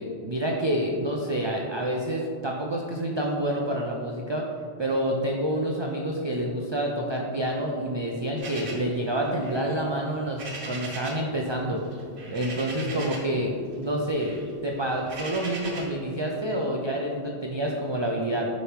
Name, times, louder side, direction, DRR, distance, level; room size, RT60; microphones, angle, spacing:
voice 1, 0.0-4.5 4.8-11.8 12.3-18.5, right 1 dB, 50° right, 0 dB, 0.3 m, -28 dB
sound 1, 8.4-11.3 11.6-13.4 13.7-16.0, right 2 dB, 70° right, 1.2 m, -40 dB
6.5 x 5.2 x 3.1 m, 2.3 s
omnidirectional pair, 1.1 m